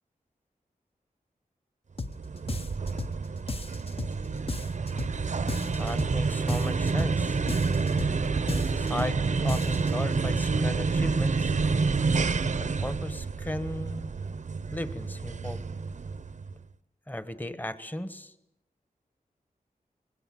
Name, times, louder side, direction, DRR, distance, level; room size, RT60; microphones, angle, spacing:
sound 1, 2.0-2.2 2.5-3.2 3.5-4.2 4.5-5.2 5.5-6.2 6.5-7.2 7.5-8.2 8.5-9.2 9.5-9.9, left 3 dB, 40° left, 1.1 m, -35 dB
sound 2, 2.0-16.5, right 4 dB, 55° right, 0.8 m, -28 dB
voice 1, 5.6-7.4 8.3-11.6 12.4-14.1 14.7-15.6 17.1-18.3, left 1 dB, 10° left, 11 dB, 1.3 m, -36 dB
25.5 x 20.5 x 7.7 m, 0.83 s
wide cardioid pair, 105°, 15 cm